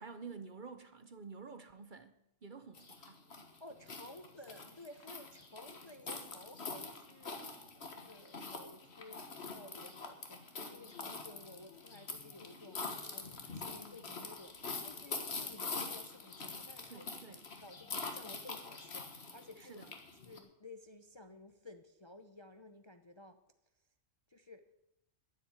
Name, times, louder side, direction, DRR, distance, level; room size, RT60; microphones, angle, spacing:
voice 1, 0.0-2.1 2.4-3.2 16.9-17.5 19.6-19.9, right 5 dB, 45° right, 0.8 m, -50 dB
sound 1, 2.7-20.4, left 4 dB, 55° left, 1.8 m, -45 dB
voice 2, 3.6-14.6 14.8-19.9 20.2-23.4 24.3-24.7, left 2 dB, 30° left, 0.6 m, -54 dB
10.0 x 9.7 x 8.7 m
omnidirectional pair, 1.3 m